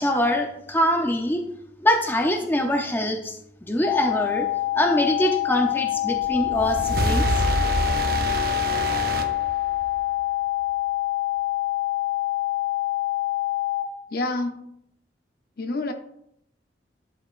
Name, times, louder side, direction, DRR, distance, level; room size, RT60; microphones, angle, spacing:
voice 1, 0.0-1.4 1.8-3.3 3.6-4.5 4.7-7.2, left 1 dB, 10° left, 3 dB, 0.6 m, -23 dB
sound 1, 3.8-13.8, left 16 dB, 35° left, 1.0 m, -26 dB
sound 2, 6.2-10.0, right 2 dB, 50° right, 0.7 m, -26 dB
voice 2, 14.1-14.7 15.6-15.9, left 2 dB, 50° left, 6 dB, 0.7 m, -27 dB
11.5 x 5.0 x 2.5 m, 0.74 s
head